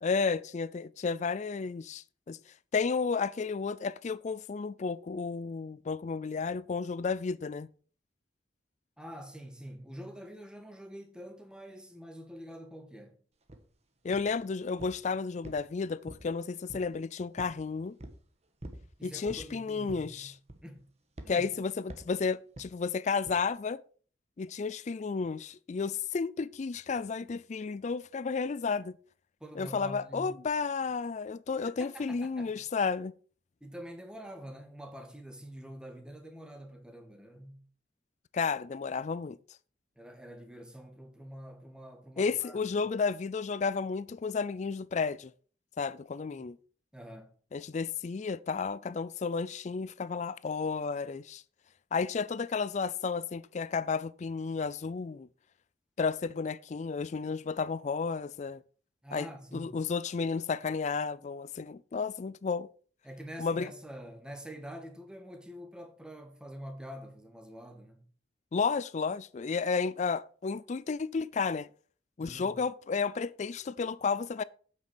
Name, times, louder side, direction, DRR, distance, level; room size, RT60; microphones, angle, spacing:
voice 1, 0.0-2.4 2.7-7.7 14.0-18.0 19.0-20.3 21.3-23.8 24.4-29.0 29.6-33.1 38.3-39.4 42.2-45.3 45.8-46.6 47.5-51.4 51.9-55.3 56.0-58.6 59.1-59.3 59.5-62.7 63.4-63.7 68.5-71.7 72.2-74.4, left 5 dB, 40° left, 0.4 m, -32 dB
voice 2, 9.0-13.2 19.0-20.3 20.6-20.9 21.2-21.5 29.4-30.4 31.8-32.6 33.6-37.6 40.0-42.6 46.4-46.5 46.9-47.3 59.0-59.7 63.0-68.0 72.2-72.6, equal, 5° right, 1.6 m, -46 dB
sound 1, 13.5-13.6 14.1-14.4 14.8-15.1 15.4-16.3 16.7-17.0 17.4-17.6 18.0-18.2 18.6-18.9 19.3-19.5 19.9-20.2 20.5-20.8 21.2-21.4 21.9-22.2 22.6-22.7 23.3-23.4, right 1 dB, 35° right, 1.4 m, -46 dB
8.7 x 6.5 x 6.1 m
head